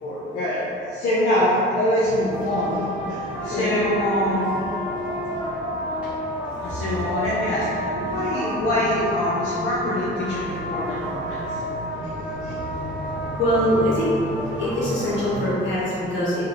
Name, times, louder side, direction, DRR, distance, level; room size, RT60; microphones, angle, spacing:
voice 1, 0.0-4.5 6.6-11.6 12.0-12.6, left 1 dB, 85° left, -7 dB, 0.6 m, -24 dB
sound 1, 2.3-15.5, equal, 5° right, 1.3 m, -30 dB
voice 2, 3.4-3.7 6.5-6.8 8.1-8.2 13.4-14.1 14.6-16.4, equal, 70° left, -8 dB, 1.4 m, -23 dB
3.2 x 2.7 x 3.8 m, 2.8 s
cardioid pair, 90°, 20 cm